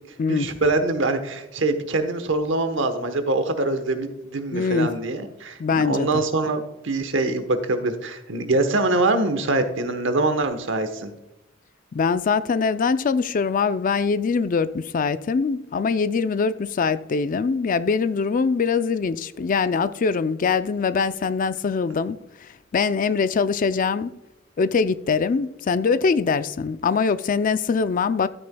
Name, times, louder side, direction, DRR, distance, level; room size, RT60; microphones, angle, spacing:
voice 1, 0.3-11.1, right 2 dB, 70° right, 1.1 m, -24 dB
voice 2, 4.5-4.9 5.6-6.2 11.9-24.1 24.6-28.3, left 5 dB, 45° left, 0.4 m, -23 dB
12.5 x 8.7 x 2.2 m
head